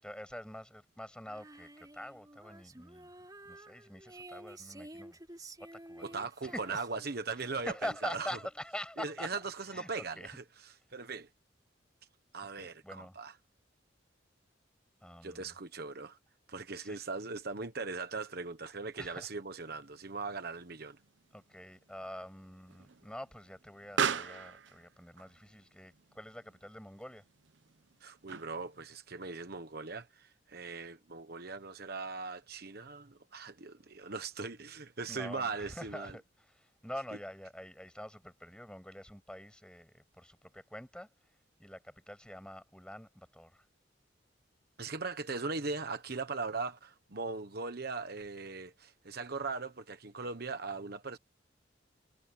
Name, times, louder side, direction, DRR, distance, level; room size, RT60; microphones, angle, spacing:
voice 1, 0.0-3.1 3.4-5.2 5.6-6.1 6.4-6.8 7.4-9.3 9.7-10.3 12.6-13.2 15.0-15.5 16.8-17.0 19.0-19.3 21.3-27.2 35.1-41.1 41.6-43.7, left 1 dB, 5° left, 7.7 m, -45 dB
Female singing, 1.3-8.6, right 2 dB, 20° right, 3.5 m, -52 dB
voice 2, 6.0-8.3 9.0-10.4 10.9-11.3 12.3-13.3 15.2-16.2 16.5-21.0 28.0-36.2 44.8-51.2, right 4 dB, 55° right, 1.2 m, -39 dB
Explosion, 19.8-28.8, right 6 dB, 70° right, 0.8 m, -41 dB
head